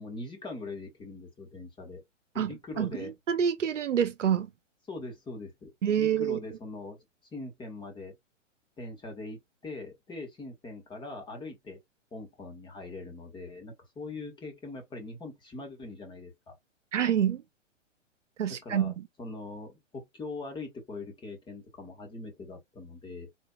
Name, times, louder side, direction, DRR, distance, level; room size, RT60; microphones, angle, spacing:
voice 1, 0.0-2.0 2.3-3.1 4.9-5.7 6.0-7.0 7.3-8.1 8.8-11.8 12.1-16.6 18.6-18.9 19.2-23.3, left 3 dB, 10° left, 1.3 m, -42 dB
voice 2, 2.4-4.5 5.8-6.4 16.9-17.4 18.4-19.0, right 9 dB, 70° right, 0.8 m, -27 dB
4.3 x 2.8 x 2.2 m
figure-of-eight pair, 120°, 38 cm